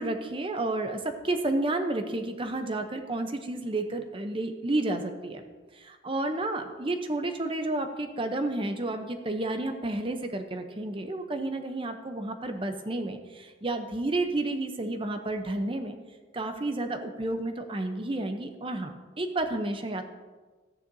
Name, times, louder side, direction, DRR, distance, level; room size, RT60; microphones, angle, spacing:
voice 1, 0.0-5.4 5.7-16.0 16.3-20.0, right 2 dB, 25° right, 6 dB, 0.6 m, -31 dB
13.5 x 9.8 x 2.7 m, 1.3 s
head